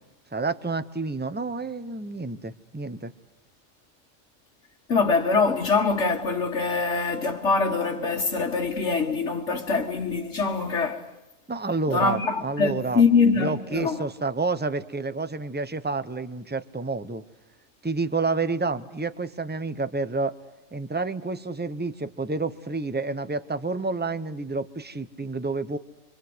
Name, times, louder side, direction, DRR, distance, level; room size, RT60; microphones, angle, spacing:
voice 1, 0.3-3.1 11.5-13.0 13.4-17.2 17.8-20.3 20.7-25.8, right 3 dB, 10° right, 0.8 m, -29 dB
voice 2, 4.9-11.1 11.9-14.0, left 4 dB, 70° left, 2.0 m, -23 dB
28.5 x 24.5 x 8.0 m
omnidirectional pair, 1.3 m